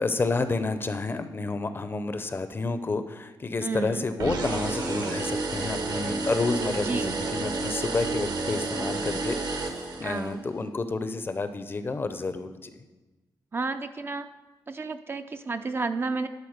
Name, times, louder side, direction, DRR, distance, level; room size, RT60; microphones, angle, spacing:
voice 1, 0.0-12.7, left 3 dB, 30° left, 10 dB, 0.6 m, -30 dB
voice 2, 3.6-4.1 6.8-7.2 10.0-10.5 13.5-14.3 14.7-16.3, right 4 dB, 30° right, 8 dB, 0.4 m, -31 dB
sound 1, 4.2-10.4, right 3 dB, 70° right, 1.3 m, -30 dB
11.0 x 4.2 x 6.6 m, 1.1 s
wide cardioid pair, 145°, 7 cm